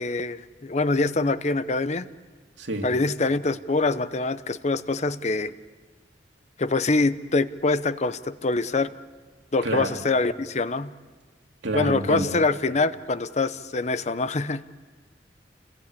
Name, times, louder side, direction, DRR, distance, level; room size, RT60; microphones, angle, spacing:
voice 1, 0.0-2.1 2.8-5.5 6.6-8.9 9.5-10.9 11.7-14.6, left 3 dB, 40° left, 14 dB, 0.7 m, -24 dB
voice 2, 9.6-10.0 11.6-12.3, right 1 dB, 85° right, 3 dB, 2.6 m, -28 dB
28.5 x 21.0 x 8.5 m, 1.4 s
head